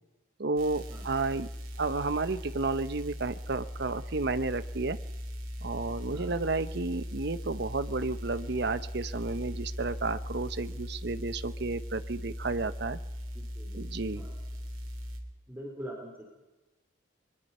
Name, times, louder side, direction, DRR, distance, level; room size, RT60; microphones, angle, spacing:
voice 1, 0.4-1.5 1.8-5.0 5.6-13.0 13.7-14.2, right 3 dB, 55° right, 13 dB, 0.9 m, -32 dB
sound 1, 0.6-15.2, equal, 90° right, 3.5 m, -39 dB
voice 2, 13.3-13.8 14.1-14.4 15.5-16.2, equal, 10° right, -1 dB, 3.6 m, -43 dB
24.0 x 22.5 x 5.5 m, 1.1 s
head